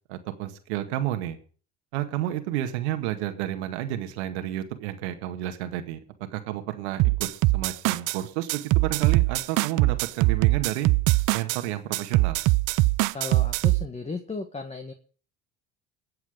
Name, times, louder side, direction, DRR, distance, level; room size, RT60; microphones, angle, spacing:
voice 1, 0.1-1.4 1.9-6.0 6.3-10.9 11.3-12.4, right 13 dB, 90° right, 8 dB, 1.9 m, -31 dB
sound 1, 7.0-8.2 8.5-11.6 11.9-13.9, right 20 dB, 65° right, 0.7 m, -22 dB
voice 2, 13.1-14.9, left 4 dB, 20° left, 6 dB, 1.8 m, -35 dB
22.0 x 8.1 x 5.1 m, 0.41 s
supercardioid pair, 80°, 32 cm